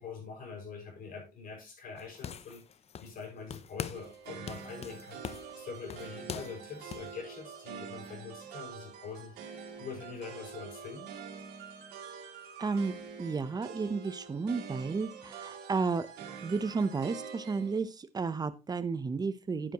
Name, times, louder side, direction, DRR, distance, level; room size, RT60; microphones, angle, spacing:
voice 1, 0.0-2.6 3.0-9.5 9.8-11.1, left 5 dB, 55° left, 1 dB, 6.0 m, -44 dB
sound 1, 2.0-3.3 3.5-4.2 4.5-7.1, left 8 dB, 40° left, 0.6 m, -42 dB
sound 2, 3.9-17.8, right 6 dB, 85° right, 2.4 m, -46 dB
voice 2, 12.6-16.1 16.4-19.7, right 4 dB, 25° right, 13 dB, 0.9 m, -32 dB
9.6 x 9.5 x 3.0 m, 0.28 s
cardioid pair, 110°, 17 cm